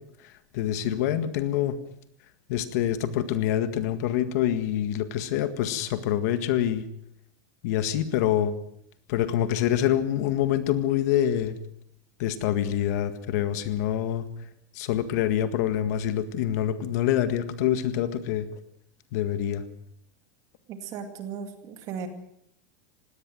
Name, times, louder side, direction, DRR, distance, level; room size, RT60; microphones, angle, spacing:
voice 1, 0.5-1.8 2.5-6.8 7.6-8.6 9.1-11.6 12.2-14.3 14.7-18.5 19.1-19.6, left 11 dB, 60° left, 11 dB, 1.8 m, -26 dB
voice 2, 20.7-22.1, right 7 dB, 35° right, 7 dB, 2.3 m, -36 dB
20.5 x 17.5 x 7.8 m, 0.71 s
supercardioid pair, 165°, 10 cm